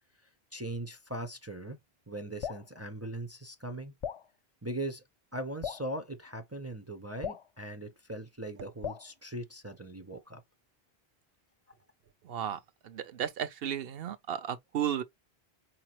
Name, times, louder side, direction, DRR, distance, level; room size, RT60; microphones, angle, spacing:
voice 1, 0.5-1.8 2.1-3.9 4.6-5.0 5.3-10.4, right 1 dB, 20° right, 0.5 m, -40 dB
Drip, 2.4-2.7 4.0-4.3 5.6-5.9 7.2-7.5 8.8-9.1, left 8 dB, 55° left, 0.3 m, -37 dB
voice 2, 12.2-15.0, right 9 dB, 65° right, 0.9 m, -34 dB
4.8 x 2.9 x 2.9 m
omnidirectional pair, 1.1 m